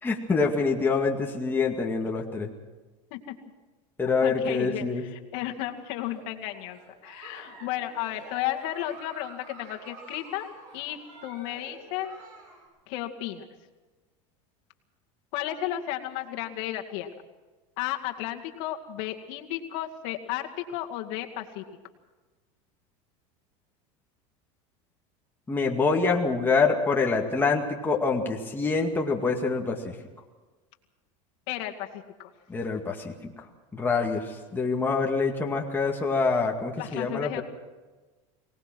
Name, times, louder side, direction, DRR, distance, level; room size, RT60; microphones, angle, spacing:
voice 1, 0.0-2.5 4.0-5.0 25.5-29.9 32.5-33.3 33.7-37.4, left 4 dB, 10° left, 0 dB, 2.1 m, -26 dB
voice 2, 4.2-10.5 10.7-12.1 12.9-13.5 15.3-17.1 17.8-21.6 31.5-32.3 36.8-37.4, left 13 dB, 65° left, 3 dB, 2.2 m, -33 dB
Giggle, 6.0-12.7, right 2 dB, 80° right, 7.5 m, -48 dB
23.5 x 19.0 x 6.2 m, 1.3 s
supercardioid pair, 130°, 16 cm